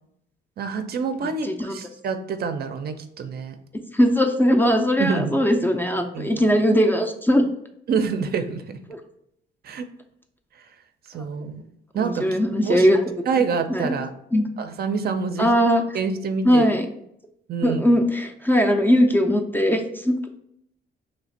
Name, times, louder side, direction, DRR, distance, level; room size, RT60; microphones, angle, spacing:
voice 1, 0.6-3.6 5.0-5.4 6.1-6.5 7.9-8.8 9.6-9.9 11.1-11.6 11.9-12.9 13.3-14.1 14.6-15.5 15.9-16.7 17.5-17.9, right 5 dB, 50° right, 7 dB, 0.4 m, -27 dB
voice 2, 1.2-1.7 3.9-7.5 8.9-9.0 12.0-13.0 13.3-14.0 14.3-14.5 15.4-15.8 16.4-16.9 17.6-20.2, equal, 10° left, 5 dB, 0.4 m, -20 dB
3.2 x 2.5 x 4.0 m, 0.75 s
cardioid pair, 90°, 20 cm